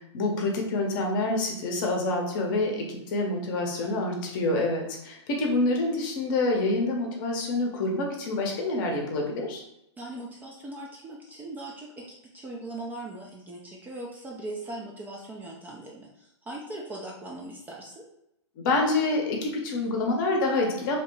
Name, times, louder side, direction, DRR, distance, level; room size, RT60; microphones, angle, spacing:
voice 1, 0.1-9.6 18.6-21.0, left 2 dB, 45° left, 1 dB, 0.7 m, -27 dB
voice 2, 10.0-18.1, right 2 dB, 10° right, -3 dB, 0.3 m, -40 dB
2.8 x 2.1 x 3.0 m, 0.82 s
hypercardioid pair, 120°, 15 cm